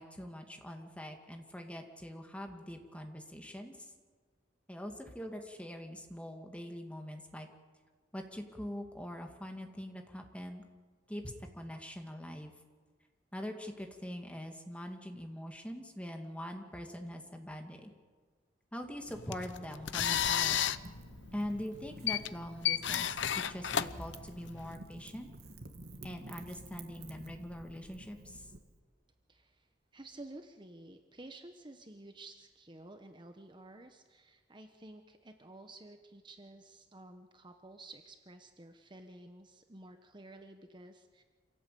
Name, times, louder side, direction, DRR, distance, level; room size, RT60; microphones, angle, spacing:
voice 1, 0.0-3.8 4.7-7.5 8.1-10.6 11.1-12.5 13.3-17.9 18.7-20.6 21.3-25.3 26.0-28.5, equal, 5° left, 4 dB, 2.2 m, -43 dB
sound 1, 19.1-24.7, left 10 dB, 85° left, 0.7 m, -33 dB
Wind / Fire, 20.0-28.6, right 2 dB, 60° right, 2.1 m, -51 dB
voice 2, 29.3-29.7 29.9-41.2, right 2 dB, 25° right, 6 dB, 1.1 m, -52 dB
26.5 x 17.0 x 8.5 m, 1.5 s
head